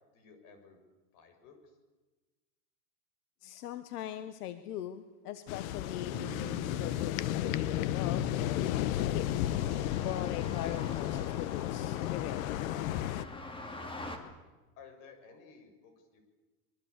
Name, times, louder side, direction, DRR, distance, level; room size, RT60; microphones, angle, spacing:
voice 1, 0.1-0.8 1.1-1.6 14.8-16.2, left 5 dB, 40° left, 6 dB, 6.9 m, -55 dB
voice 2, 3.4-9.3 10.0-12.4, left 12 dB, 75° left, 11 dB, 1.6 m, -41 dB
sound 1, 5.5-13.2, left 12 dB, 60° left, 1.4 m, -33 dB
Bass guitar, 6.1-10.2, right 13 dB, 60° right, 1.5 m, -51 dB
sound 2, 8.4-14.2, left 2 dB, 10° left, 2.7 m, -46 dB
25.5 x 23.5 x 8.4 m, 1.2 s
supercardioid pair, 160°, 46 cm